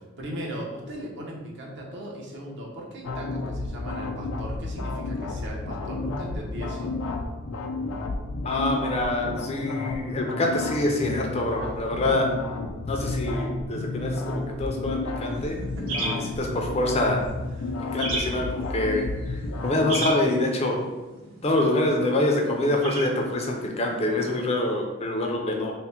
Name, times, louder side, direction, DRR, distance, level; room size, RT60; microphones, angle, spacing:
voice 1, 0.0-6.9 15.2-16.1 17.5-17.7 19.5-19.6, equal, 55° right, -2 dB, 0.7 m, -38 dB
sound 1, 3.0-20.1, left 2 dB, 90° left, 0.4 m, -32 dB
voice 2, 8.4-12.3 12.9-15.6 16.0-17.2 17.9-20.8 21.4-25.7, left 1 dB, 30° left, 2 dB, 0.4 m, -26 dB
sound 2, 15.3-24.6, right 2 dB, 90° right, 0.8 m, -37 dB
3.3 x 2.1 x 4.2 m, 1.2 s
head